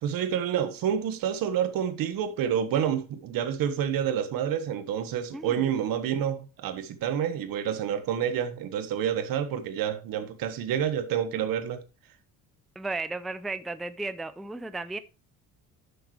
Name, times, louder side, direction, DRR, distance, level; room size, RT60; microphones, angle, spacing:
voice 1, 0.0-11.8, right 9 dB, 80° right, 1.5 m, -28 dB
voice 2, 5.3-5.7 12.8-15.0, right 3 dB, ahead, 0.3 m, -34 dB
11.0 x 6.7 x 3.2 m
cardioid pair, 155°, 34 cm